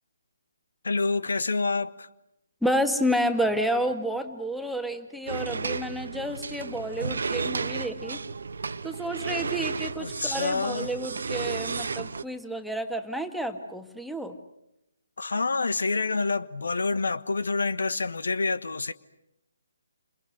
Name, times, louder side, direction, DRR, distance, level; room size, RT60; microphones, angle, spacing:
voice 1, 0.8-2.1 10.0-10.9 15.2-18.9, left 3 dB, 65° left, 1.2 m, -27 dB
voice 2, 2.6-8.2 8.8-14.4, equal, ahead, 1.7 m, -30 dB
sound 1, 5.3-12.2, right 4 dB, 60° right, 1.1 m, -33 dB
29.5 x 27.5 x 6.5 m
figure-of-eight pair, 140°, 0 cm